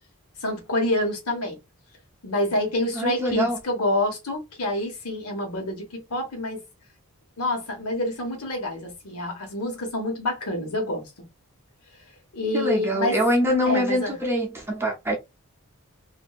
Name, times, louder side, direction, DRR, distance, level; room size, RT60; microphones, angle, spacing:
voice 1, 0.4-1.6 2.2-6.6 7.4-11.1 12.3-13.2 13.7-14.2, left 1 dB, 85° left, 1.1 m, -27 dB
voice 2, 2.9-3.6 12.5-15.2, equal, 10° right, 0.6 m, -24 dB
2.9 x 2.6 x 2.3 m
head